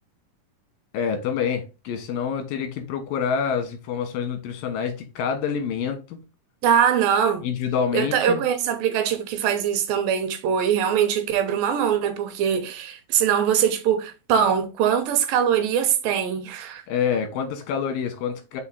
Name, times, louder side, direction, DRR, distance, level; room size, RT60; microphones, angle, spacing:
voice 1, 0.9-6.2 7.4-8.4 16.9-18.6, left 7 dB, 80° left, 3.0 m, -27 dB
voice 2, 6.6-7.4 7.9-16.8, right 8 dB, 85° right, 2.7 m, -22 dB
5.8 x 4.4 x 3.8 m
omnidirectional pair, 4.1 m